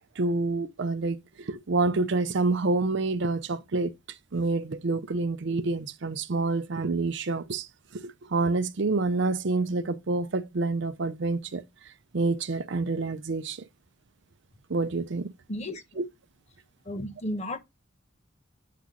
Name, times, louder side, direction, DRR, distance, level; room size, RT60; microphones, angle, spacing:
voice 1, 0.2-3.9 4.3-11.6 12.1-13.7 14.7-15.3 16.0-16.1, right 3 dB, 65° right, 0.6 m, -28 dB
voice 2, 15.5-15.8 16.9-17.6, left 1 dB, 35° left, 0.9 m, -33 dB
8.3 x 3.0 x 3.8 m
head